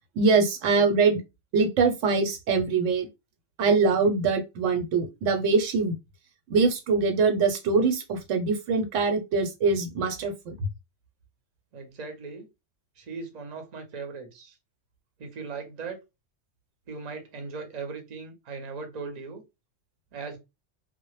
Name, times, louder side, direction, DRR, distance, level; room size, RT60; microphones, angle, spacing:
voice 1, 0.2-1.2 1.5-3.1 3.6-6.0 6.5-10.6, right 4 dB, 85° right, 1.0 m, -23 dB
voice 2, 11.7-12.5 13.0-14.6 15.2-16.0 16.9-19.4 20.1-20.4, right 4 dB, 45° right, 0.6 m, -38 dB
2.1 x 2.0 x 3.0 m
omnidirectional pair, 1.2 m